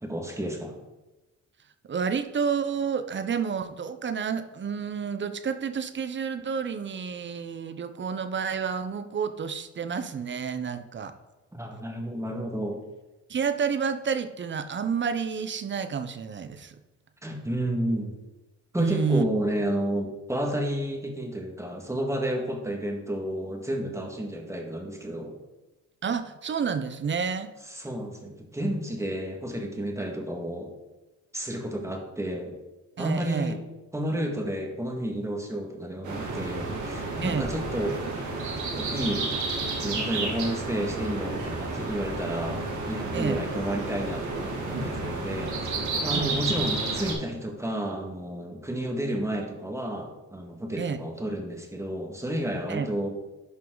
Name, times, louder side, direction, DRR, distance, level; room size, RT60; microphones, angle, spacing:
voice 1, 0.0-0.8 11.5-12.8 17.2-18.2 18.7-25.4 27.7-30.7 31.3-32.5 33.0-33.6 33.9-38.0 38.7-39.3 39.8-45.7 46.0-53.1, equal, 10° right, 1 dB, 1.9 m, -31 dB
voice 2, 1.9-11.1 13.3-16.8 18.8-19.3 26.0-27.5 33.0-33.6 37.2-37.5 43.1-43.4 46.1-46.4 50.8-51.0 52.7-52.9, right 6 dB, 40° right, 11 dB, 0.8 m, -30 dB
sound 1, 36.0-47.1, right 3 dB, 75° right, 2.2 m, -31 dB
11.0 x 5.6 x 3.9 m, 1.1 s
cardioid pair, 90°, 30 cm